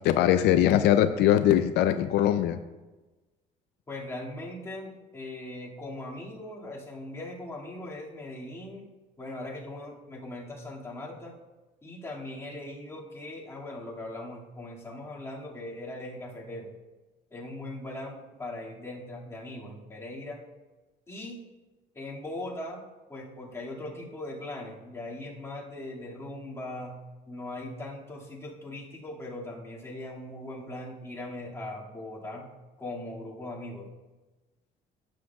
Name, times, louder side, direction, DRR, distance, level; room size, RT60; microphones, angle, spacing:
voice 1, 0.0-2.6, left 11 dB, 85° left, 10 dB, 0.4 m, -21 dB
voice 2, 3.9-8.9 9.2-11.4 11.8-16.7 17.3-20.4 21.1-21.5 21.9-32.5 32.8-33.9, left 1 dB, 15° left, -5 dB, 2.1 m, -40 dB
11.5 x 7.6 x 2.3 m, 1.2 s
cardioid pair, 110°, 17 cm